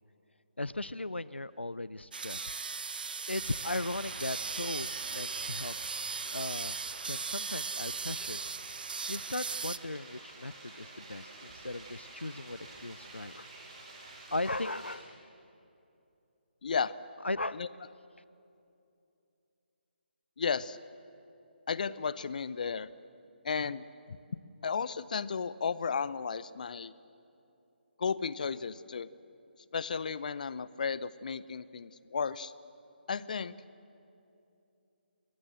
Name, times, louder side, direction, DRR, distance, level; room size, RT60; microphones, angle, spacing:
voice 1, 0.6-2.5 3.3-5.7 6.3-6.8 7.0-8.4 9.1-13.5 14.3-15.1 17.2-17.6, left 2 dB, 85° left, 18 dB, 0.6 m, -37 dB
sound 1, 2.1-9.8, right 5 dB, 55° right, 0.7 m, -38 dB
sound 2, 3.3-14.9, right 2 dB, 35° right, 6.4 m, -49 dB
voice 2, 16.6-16.9 17.5-17.7 20.4-20.8 21.7-22.9 23.4-24.2 24.6-26.9 28.0-29.1 29.7-32.5 33.1-33.5, left 6 dB, 45° left, 17 dB, 0.7 m, -34 dB
28.5 x 22.0 x 7.6 m, 2.8 s
figure-of-eight pair, 145°, 6 cm